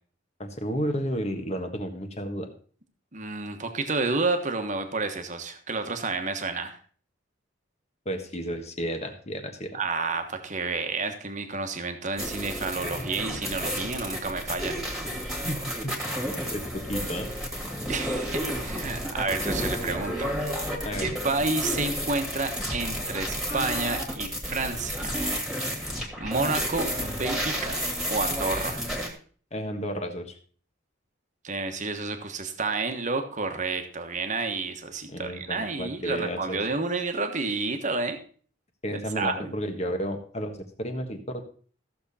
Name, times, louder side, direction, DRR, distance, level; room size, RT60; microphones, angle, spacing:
voice 1, 0.4-2.5 8.0-9.8 15.4-15.9 16.5-17.3 20.8-21.1 29.5-30.4 35.1-36.6 38.8-41.4, equal, 35° left, 5 dB, 1.4 m, -32 dB
voice 2, 3.1-6.8 9.7-14.8 17.9-20.3 21.0-25.2 26.2-27.8 28.1-28.8 31.4-38.2 38.9-39.5, right 3 dB, 40° right, 7 dB, 1.3 m, -30 dB
sound 1, 12.2-29.1, equal, 5° right, 2.2 m, -31 dB
14.5 x 6.8 x 4.2 m, 0.43 s
head